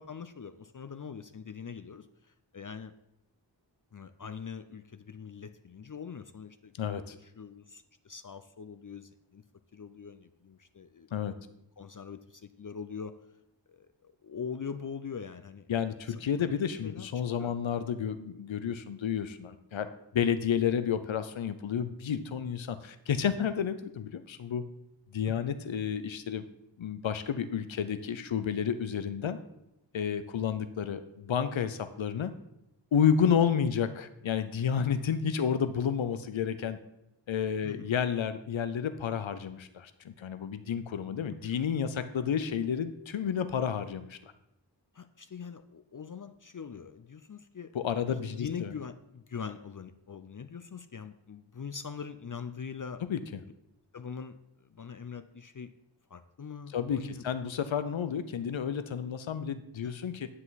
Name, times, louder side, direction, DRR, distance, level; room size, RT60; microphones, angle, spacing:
voice 1, 0.0-2.9 3.9-6.7 7.2-9.4 9.7-11.1 11.5-13.1 13.7-15.7 16.8-17.1 17.4-17.5 25.3-25.5 37.6-37.9 41.2-41.4 44.9-47.7 48.1-53.0 53.9-54.4 54.7-55.7 56.1-57.2, left 6 dB, 45° left, 10 dB, 0.5 m, -43 dB
voice 2, 6.8-7.1 11.1-11.3 15.7-19.9 20.1-24.6 25.1-26.5 26.8-29.4 29.9-32.3 32.9-36.8 37.3-44.3 47.7-48.7 53.1-53.2 56.7-60.3, left 8 dB, 90° left, 11 dB, 0.6 m, -31 dB
9.8 x 7.8 x 4.0 m, 0.86 s
wide cardioid pair, 55°, 45 cm